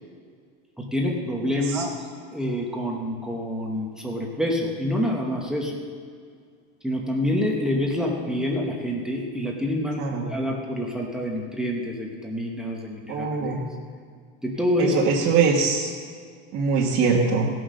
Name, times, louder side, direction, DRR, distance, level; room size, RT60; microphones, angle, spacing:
voice 1, 0.8-1.9 2.3-5.7 6.8-10.0 10.3-13.5 14.4-15.0, left 1 dB, ahead, -1 dB, 0.9 m, -27 dB
voice 2, 13.1-13.6 14.8-15.9 16.5-17.5, right 5 dB, 40° right, -4 dB, 1.4 m, -22 dB
17.0 x 6.4 x 6.4 m, 2.1 s
cardioid pair, 170°, 31 cm